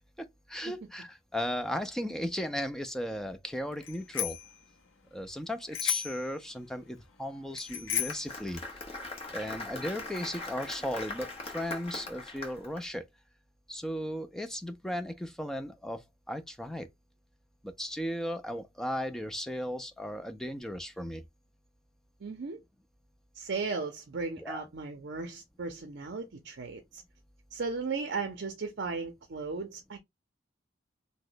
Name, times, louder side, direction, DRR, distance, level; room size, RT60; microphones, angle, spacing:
voice 1, 0.0-4.4 5.1-8.6 9.3-13.0 13.7-16.9 17.6-21.2 24.4-24.7, equal, 5° left, 0.4 m, -36 dB
Bicycle bell, 3.8-4.5 5.7-6.3 7.6-8.3, left 10 dB, 70° left, 0.6 m, -33 dB
Applause, 7.7-12.8, left 2 dB, 30° left, 0.9 m, -41 dB
voice 2, 22.2-22.6 23.3-27.0 27.5-30.0, right 4 dB, 60° right, 0.5 m, -36 dB
2.9 x 2.1 x 3.9 m
head